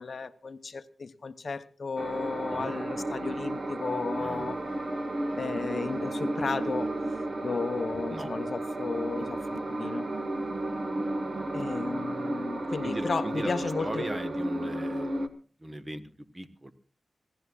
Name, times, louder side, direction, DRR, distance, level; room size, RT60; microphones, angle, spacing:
voice 1, 0.0-4.6 5.4-6.9 7.4-10.1 11.5-14.1, left 4 dB, 55° left, 0.8 m, -34 dB
sound 1, 2.0-15.3, right 1 dB, 45° right, 1.4 m, -33 dB
voice 2, 12.8-15.1 15.6-16.7, right 1 dB, 25° right, 1.3 m, -39 dB
26.5 x 17.0 x 2.4 m
wide cardioid pair, 125°, 0 cm